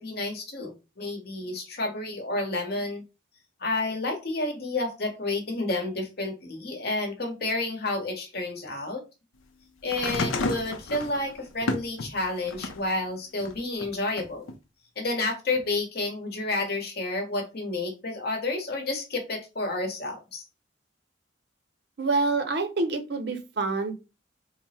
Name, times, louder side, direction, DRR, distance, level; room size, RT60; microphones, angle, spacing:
voice 1, 0.0-3.0 3.6-9.0 9.8-14.5 15.0-20.4, left 2 dB, 50° left, 2 dB, 1.0 m, -30 dB
sound 1, 9.9-12.9 13.4-14.5 15.6-15.7, left 2 dB, 80° left, 0.6 m, -32 dB
voice 2, 22.0-23.9, right 3 dB, 55° right, 8 dB, 0.6 m, -27 dB
3.3 x 2.0 x 4.2 m, 0.28 s
head